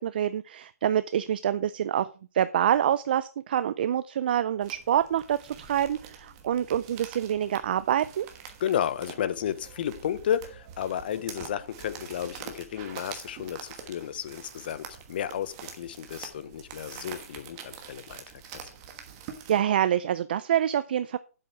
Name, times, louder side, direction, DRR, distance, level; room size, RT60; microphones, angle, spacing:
voice 1, 0.0-2.1 2.3-8.3 19.5-21.2, right 10 dB, 40° right, 0.4 m, -26 dB
sound 1, 4.6-19.6, right 8 dB, 25° right, 1.3 m, -45 dB
voice 2, 8.6-18.2 18.5-18.7, left 9 dB, 40° left, 0.7 m, -32 dB
8.2 x 7.7 x 4.7 m
hypercardioid pair, 165°, 8 cm